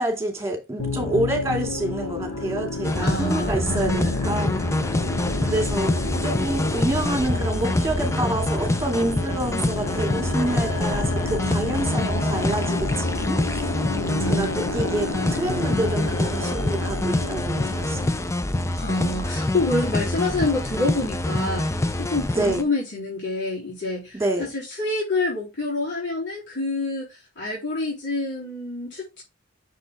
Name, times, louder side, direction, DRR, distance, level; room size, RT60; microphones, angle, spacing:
voice 1, 0.0-4.8 5.4-13.6 14.3-14.5 14.7-18.1 22.4-22.7 24.1-24.5, right 1 dB, 15° right, 2.5 m, -27 dB
sound 1, 0.8-18.3, left 3 dB, 70° left, 2.3 m, -30 dB
sound 2, 2.8-22.6, left 1 dB, 15° left, 0.5 m, -26 dB
voice 2, 3.0-4.0 13.9-14.6 18.7-24.2 24.5-29.2, left 2 dB, 55° left, 3.5 m, -27 dB
6.8 x 4.9 x 3.5 m
head